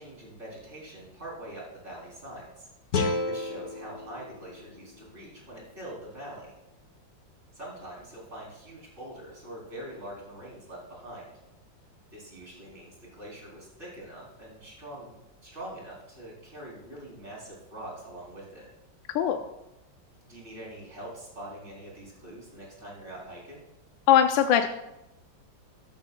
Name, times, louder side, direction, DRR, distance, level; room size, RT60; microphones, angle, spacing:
voice 1, 0.0-2.7 3.2-6.5 7.5-11.3 12.1-15.1 15.4-18.7 20.3-23.6, right 1 dB, 35° right, -4 dB, 3.8 m, -43 dB
sound 1, 2.9-6.0, left 3 dB, 55° left, 1.3 m, -33 dB
voice 2, 19.1-19.4 24.1-24.7, left 9 dB, 80° left, 6 dB, 1.3 m, -21 dB
13.5 x 12.5 x 2.2 m, 0.95 s
omnidirectional pair, 2.1 m